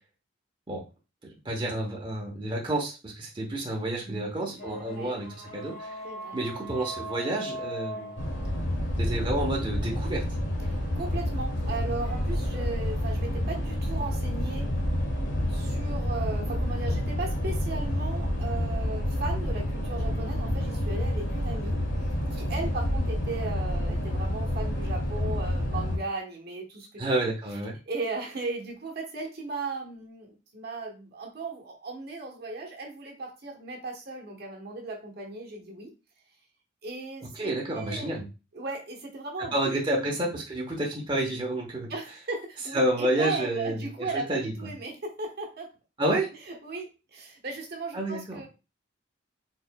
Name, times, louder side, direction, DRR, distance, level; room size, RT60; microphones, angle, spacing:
voice 1, 1.2-5.9 6.3-8.1 9.0-10.2 27.0-27.7 37.3-38.2 39.5-41.9 42.7-44.5 46.0-46.3 47.9-48.4, right 1 dB, 25° right, -2 dB, 0.9 m, -29 dB
voice 2, 4.0-5.2 6.0-6.3 10.7-14.7 15.5-21.8 22.3-27.3 27.9-35.9 36.8-38.2 38.5-39.8 41.9-45.7 46.5-48.5, right 3 dB, 55° right, 0 dB, 1.1 m, -37 dB
sound 1, 4.6-13.0, right 1 dB, 45° left, 1.4 m, -42 dB
sound 2, 8.2-26.0, left 1 dB, 75° left, 1.3 m, -29 dB
4.6 x 3.9 x 2.2 m, 0.30 s
head